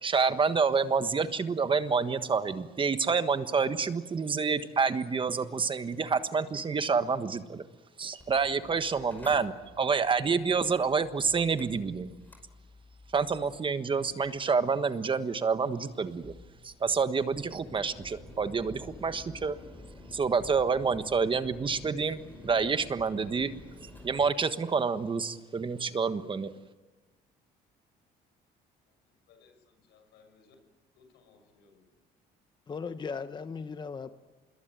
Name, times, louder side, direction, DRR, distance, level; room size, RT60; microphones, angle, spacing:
voice 1, 0.0-7.6 8.0-12.1 13.1-16.3 16.6-19.6 20.1-23.5 24.0-26.5, right 5 dB, 30° right, 10 dB, 1.4 m, -28 dB
Mechanical fan, 8.2-24.3, left 2 dB, 10° left, 5.2 m, -51 dB
voice 2, 29.3-30.5 30.9-31.9, left 5 dB, 85° left, 6 dB, 6.2 m, -61 dB
voice 3, 32.7-34.1, left 5 dB, 25° left, 10 dB, 1.0 m, -37 dB
26.5 x 21.5 x 9.1 m, 1.2 s
cardioid pair, 110°, 17 cm